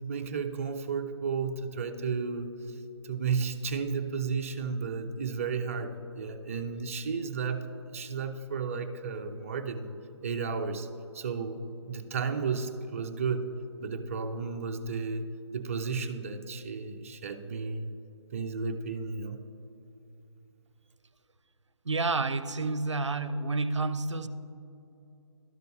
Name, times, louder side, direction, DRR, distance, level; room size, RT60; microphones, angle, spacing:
voice 1, 0.0-2.8 3.0-7.7 7.9-9.9 10.2-10.9 11.1-13.5 13.8-17.9 18.3-19.4, right 5 dB, 30° right, 6 dB, 0.4 m, -33 dB
voice 2, 21.8-24.3, right 3 dB, 80° right, 13 dB, 0.5 m, -29 dB
12.0 x 6.6 x 3.1 m, 2.8 s
figure-of-eight pair, 140°, 15 cm